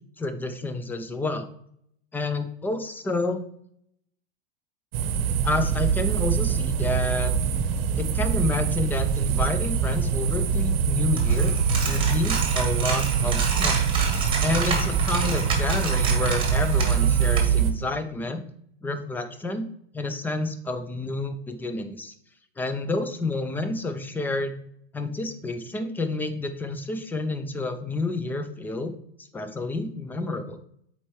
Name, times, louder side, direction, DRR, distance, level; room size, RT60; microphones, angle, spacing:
voice 1, 0.2-1.5 2.1-3.4 5.4-7.3 8.0-11.5 11.8-13.8 14.4-18.4 18.8-19.7 19.9-22.1 22.6-24.5 24.9-28.9 29.2-30.6, left 2 dB, 5° left, 9 dB, 0.4 m, -29 dB
sound 1, 4.9-17.7, right 7 dB, 60° right, 0.8 m, -24 dB
Coin (dropping), 11.2-17.4, right 4 dB, 15° right, 1.4 m, -30 dB
7.7 x 4.3 x 3.1 m, 0.69 s
supercardioid pair, 135°, 30 cm